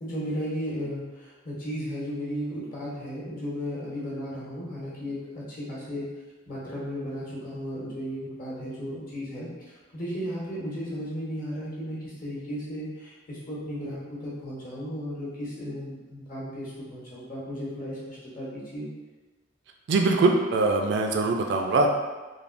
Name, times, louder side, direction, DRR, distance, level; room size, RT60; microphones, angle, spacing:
voice 1, 0.0-6.0 6.5-18.9, equal, 45° left, -7 dB, 0.9 m, -35 dB
voice 2, 19.9-21.9, right 3 dB, 60° right, 2 dB, 0.3 m, -22 dB
3.3 x 2.2 x 2.5 m, 1.2 s
head